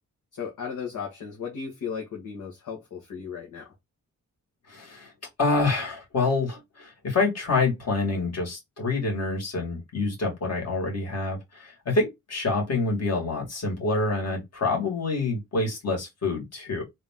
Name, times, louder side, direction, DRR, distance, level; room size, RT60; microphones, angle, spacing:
voice 1, 0.3-3.7, left 6 dB, 80° left, 1.6 m, -35 dB
voice 2, 4.7-5.1 5.4-16.8, left 3 dB, 55° left, 2.6 m, -27 dB
3.7 x 3.0 x 3.7 m
cardioid pair, 110°, 31 cm